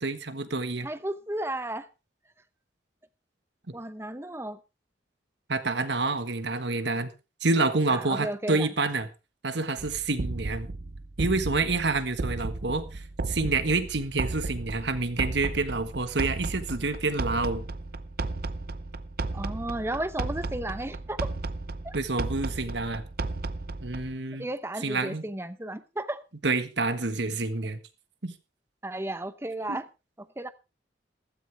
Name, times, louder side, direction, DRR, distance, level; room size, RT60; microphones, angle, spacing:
voice 1, 0.0-0.9 5.5-7.1 7.4-9.1 9.4-10.7 11.2-17.6 21.9-23.0 23.8-24.5 24.8-25.3 26.4-27.8 28.2-28.3 29.7-29.8, right 3 dB, 70° right, 1.5 m, -28 dB
voice 2, 0.8-1.9 3.7-4.6 7.9-8.7 19.3-21.3 21.8-21.9 24.4-26.2 28.8-29.9 30.2-30.5, right 1 dB, 15° right, 0.8 m, -33 dB
sound 1, 9.8-24.2, right 3 dB, 50° right, 0.6 m, -34 dB
15.0 x 13.0 x 3.4 m
head